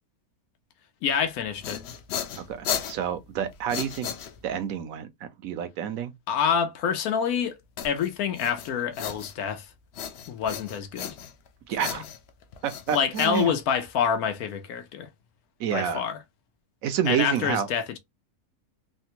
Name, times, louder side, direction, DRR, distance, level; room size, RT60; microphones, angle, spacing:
voice 1, 1.0-1.8 6.3-7.6 7.8-9.7 10.3-11.2 11.8-12.0 12.9-15.1 15.7-16.2 17.1-18.0, left 7 dB, 85° left, 1.2 m, -27 dB
sound 1, 1.3-4.7 7.8-9.6 9.9-11.5 11.8-14.0, left 8 dB, 65° left, 0.6 m, -36 dB
voice 2, 2.3-4.1 4.4-6.1 11.7-12.0 12.6-13.5 15.6-16.0 16.8-17.7, right 9 dB, 75° right, 1.0 m, -29 dB
3.4 x 2.2 x 2.8 m
omnidirectional pair, 1.5 m